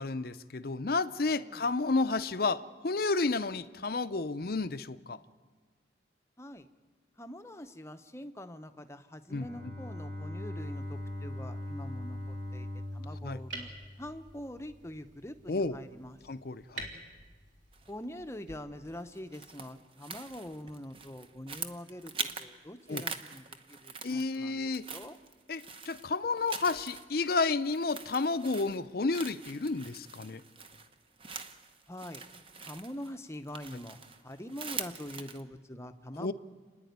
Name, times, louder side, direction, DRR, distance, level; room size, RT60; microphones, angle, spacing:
voice 1, 0.0-5.2 9.3-9.7 13.2-13.4 15.5-15.8 16.3-16.9 22.9-23.0 24.0-24.8 25.5-30.4 36.2-36.3, left 3 dB, 55° left, 13 dB, 0.6 m, -31 dB
voice 2, 1.3-1.7 6.4-6.7 7.2-12.7 12.9-13.7 14.0-16.3 17.9-24.6 24.9-25.2 31.9-32.2 32.6-36.3, left 1 dB, 15° left, 8 dB, 0.8 m, -44 dB
Bowed string instrument, 9.3-14.5, left 1 dB, 50° right, 2.6 m, -40 dB
sound 1, 10.5-18.6, right 2 dB, 90° right, 3.5 m, -50 dB
sound 2, 17.7-18.1 18.8-22.5 22.8-24.4 24.7-35.4, right 5 dB, 30° right, 0.9 m, -44 dB
30.0 x 10.5 x 9.4 m, 1.4 s
head